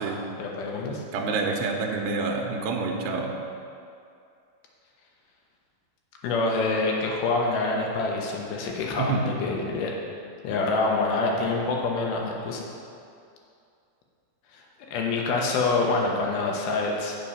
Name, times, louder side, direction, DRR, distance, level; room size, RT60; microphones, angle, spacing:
voice 1, 0.4-1.0 6.2-9.9 10.4-12.6 14.5-14.6 14.9-17.2, left 3 dB, 80° left, -1 dB, 2.9 m, -26 dB
voice 2, 1.1-3.4 9.0-9.3, right 4 dB, 80° right, 1 dB, 2.4 m, -27 dB
8.8 x 6.3 x 5.4 m, 2.4 s
omnidirectional pair, 4.4 m